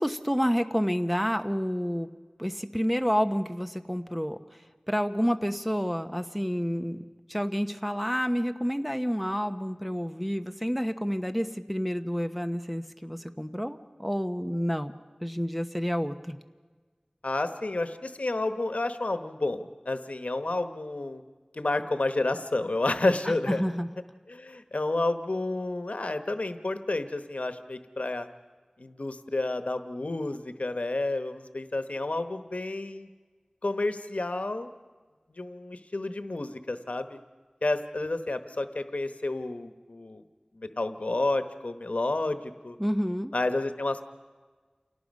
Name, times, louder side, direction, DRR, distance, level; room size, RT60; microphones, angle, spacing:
voice 1, 0.0-2.1 2.4-4.4 4.9-7.0 7.3-14.9 15.2-16.4 23.5-23.9 42.8-43.3, equal, ahead, 8 dB, 1.1 m, -29 dB
voice 2, 17.2-21.2 21.5-23.6 24.3-28.3 28.8-33.1 33.6-34.7 35.3-37.2 37.6-40.2 40.6-42.8 43.3-44.0, left 2 dB, 85° left, 9 dB, 1.0 m, -30 dB
28.5 x 18.0 x 5.4 m, 1.4 s
wide cardioid pair, 40°, 2 cm